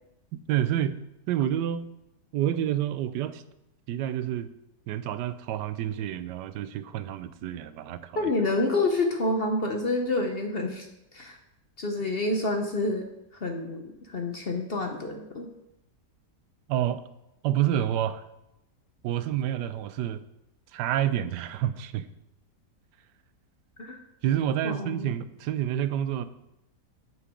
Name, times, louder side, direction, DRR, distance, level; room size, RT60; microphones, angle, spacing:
voice 1, 0.3-1.0 1.3-1.9 2.3-3.4 3.9-4.5 4.9-8.3 16.7-17.0 17.4-18.2 19.0-20.2 20.7-22.1 24.2-26.3, right 11 dB, 85° right, 14 dB, 1.2 m, -28 dB
voice 2, 8.2-10.9 11.1-11.4 11.8-13.1 13.4-15.5 23.8-24.0 24.6-25.1, left 2 dB, 45° left, 4 dB, 0.8 m, -28 dB
8.5 x 6.1 x 5.0 m, 0.87 s
omnidirectional pair, 1.8 m